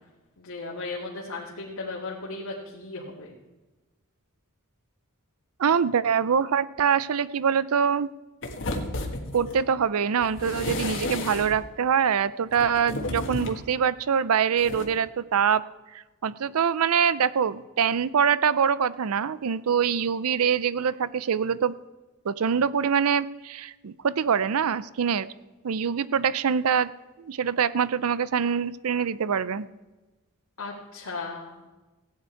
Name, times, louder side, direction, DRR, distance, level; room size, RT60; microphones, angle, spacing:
voice 1, 0.4-3.3 30.6-31.6, left 3 dB, 85° left, -5 dB, 2.2 m, -36 dB
voice 2, 5.6-8.1 9.3-15.6 16.2-21.7 22.3-25.3 25.6-26.9 27.2-29.7, right 7 dB, 85° right, 17 dB, 0.5 m, -24 dB
sound 1, 8.4-9.6 10.2-11.7 12.5-13.7 14.6-14.8, left 2 dB, 60° left, 1.5 m, -32 dB
16.0 x 9.5 x 4.6 m, 1.1 s
head